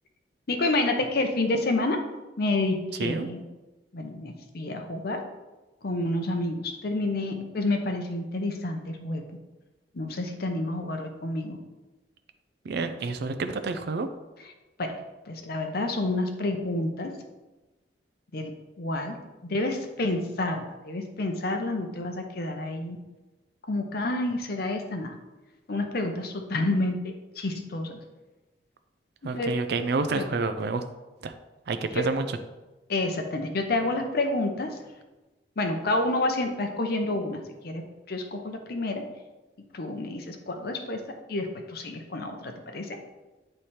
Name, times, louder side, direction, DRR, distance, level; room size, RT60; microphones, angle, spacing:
voice 1, 0.5-2.0 2.4-3.4 3.9-5.2 5.8-9.2 9.9-11.6 14.8-15.0 15.3-17.1 18.3-19.2 19.4-23.0 23.7-25.1 25.7-28.0 29.2-29.6 30.1-30.3 31.9-32.1 32.9-34.8 35.6-39.0 39.7-41.0 41.3-43.0, left 2 dB, 60° left, 5 dB, 0.7 m, -29 dB
voice 2, 12.6-14.1 29.2-30.8 31.2-31.3 31.7-32.3, right 3 dB, 60° right, 8 dB, 0.4 m, -28 dB
8.9 x 3.3 x 4.2 m, 1.1 s
head